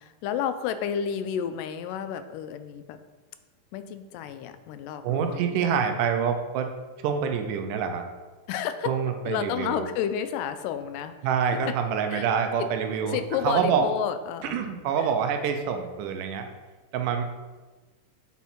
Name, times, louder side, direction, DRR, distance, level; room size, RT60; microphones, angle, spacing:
voice 1, 0.0-3.0 3.7-5.6 8.5-8.9 9.3-11.1 11.7-11.8 12.1-12.3 12.6-12.7 13.1-14.7 15.0-15.1, left 8 dB, 90° left, 10 dB, 2.2 m, -31 dB
voice 2, 5.0-6.7 7.0-8.0 8.9-9.8 11.2-13.2 13.4-13.8 14.5-16.5 16.9-17.2, right 7 dB, 85° right, 5 dB, 2.2 m, -26 dB
8.2 x 4.2 x 4.3 m, 1.3 s
omnidirectional pair, 3.8 m